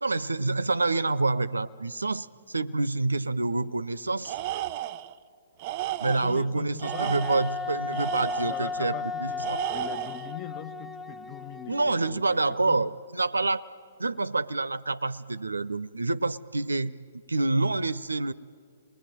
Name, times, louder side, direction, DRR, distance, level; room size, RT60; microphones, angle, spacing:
voice 1, 0.0-4.4 6.0-9.6 11.7-13.7 14.0-16.9 17.3-18.3, right 3 dB, 75° right, 0.7 m, -27 dB
Tools, 4.2-5.1 5.6-6.4 6.8-8.7 9.4-10.3, right 14 dB, 35° right, 0.7 m, -33 dB
voice 2, 6.0-12.4 12.7-12.9, left 10 dB, 25° left, 1.1 m, -42 dB
Wind instrument woodwind instrument, 6.8-12.3, left 4 dB, 5° left, 0.7 m, -35 dB
28.5 x 21.0 x 9.2 m
figure-of-eight pair, 120°, 0 cm